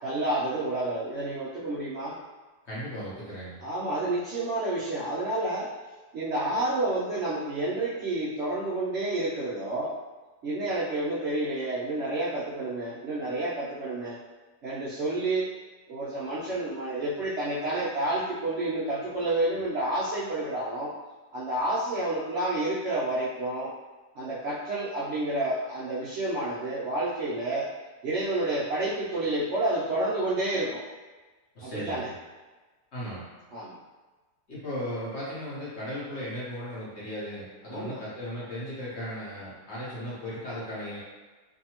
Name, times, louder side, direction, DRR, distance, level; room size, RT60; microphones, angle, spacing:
voice 1, 0.0-2.2 3.6-5.7 6.1-10.0 10.4-14.2 14.6-15.5 15.9-20.9 21.3-23.7 24.1-27.7 28.0-30.8 31.6-32.1 33.5-33.8 37.7-38.0, right 2 dB, 85° right, -8 dB, 0.6 m, -29 dB
voice 2, 2.7-3.7 31.5-32.1 32.9-33.2 34.5-41.0, equal, 50° left, -8 dB, 0.9 m, -36 dB
2.7 x 2.6 x 2.8 m, 1.3 s
omnidirectional pair, 1.8 m